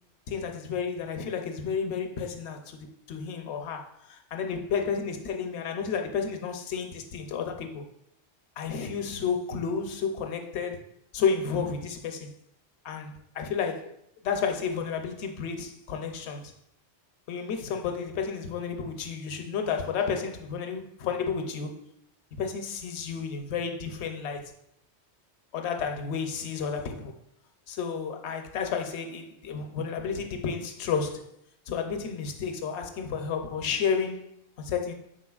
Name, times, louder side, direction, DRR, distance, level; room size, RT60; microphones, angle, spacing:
voice 1, 0.3-7.9 8.6-10.8 11.1-12.3 12.8-13.9 14.2-16.5 17.3-21.8 22.4-24.5 25.5-27.2 27.7-31.2 31.7-34.9, left 6 dB, 75° left, 0.8 m, -31 dB
4.8 x 3.8 x 2.3 m
omnidirectional pair, 1.1 m